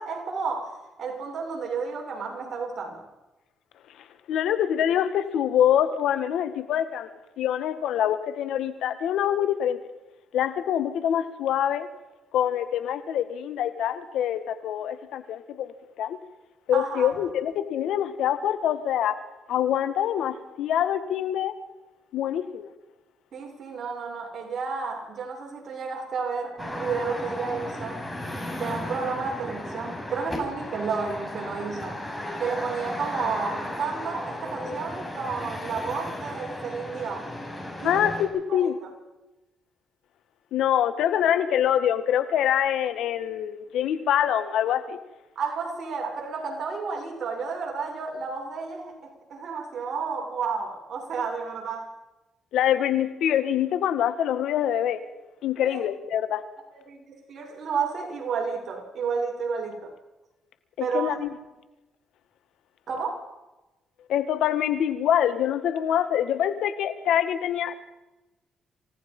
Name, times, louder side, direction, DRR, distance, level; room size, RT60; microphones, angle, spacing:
voice 1, 0.0-3.0 16.7-17.1 23.3-28.0 28.6-32.0 32.4-37.4 37.8-38.1 38.5-38.9 45.4-51.9 55.6-55.8 56.7-59.9 60.8-61.2 62.9-63.3, right 5 dB, 55° right, 1 dB, 7.0 m, -31 dB
voice 2, 4.3-7.1 7.4-9.8 10.3-11.9 12.3-16.2 16.7-19.2 19.5-21.5 22.1-22.7 37.8-38.8 40.5-45.0 52.5-55.0 55.4-56.4 60.8-61.4 64.1-67.8, left 10 dB, 80° left, 11 dB, 1.9 m, -25 dB
sound 1, 26.6-38.3, left 1 dB, 10° left, 7.5 m, -35 dB
27.5 x 17.5 x 5.6 m, 1.0 s
cardioid pair, 90°, 0 cm